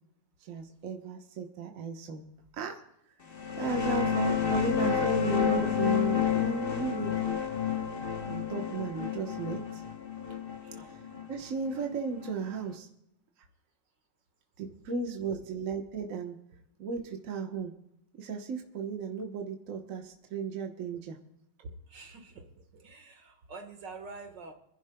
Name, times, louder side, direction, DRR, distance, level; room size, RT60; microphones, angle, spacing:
voice 1, 0.4-2.2 2.5-2.8 3.6-7.3 8.0-9.8 10.9-11.0 11.3-12.9 14.6-16.4 16.8-17.7 18.2-21.2, right 5 dB, 50° right, 3 dB, 1.4 m, -35 dB
sound 1, 3.3-12.6, left 8 dB, 35° left, 1.0 m, -30 dB
voice 2, 10.6-11.0 21.6-24.5, right 3 dB, 75° right, 5 dB, 2.1 m, -47 dB
28.0 x 11.0 x 2.2 m, 0.76 s
omnidirectional pair, 2.0 m